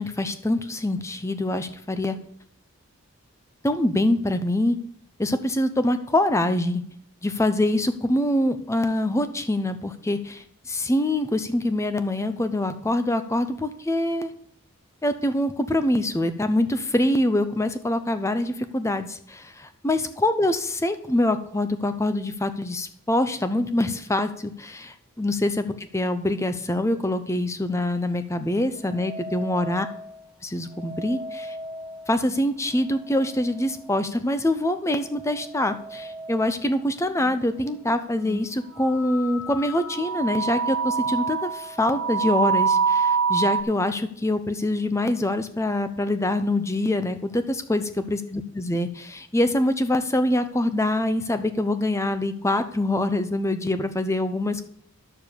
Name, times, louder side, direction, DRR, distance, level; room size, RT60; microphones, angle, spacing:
voice 1, 0.0-2.2 3.6-4.8 5.2-6.8 7.2-14.3 15.0-19.5 19.8-29.9 30.4-31.6 32.1-54.6, left 1 dB, 15° left, 10 dB, 0.6 m, -24 dB
sound 1, 28.9-30.2 30.7-32.4 32.8-33.9 34.9-36.7 37.3-37.4 38.2-38.5 38.8-43.6, right 5 dB, 5° right, 1.6 m, -28 dB
11.0 x 7.1 x 6.8 m, 0.66 s
head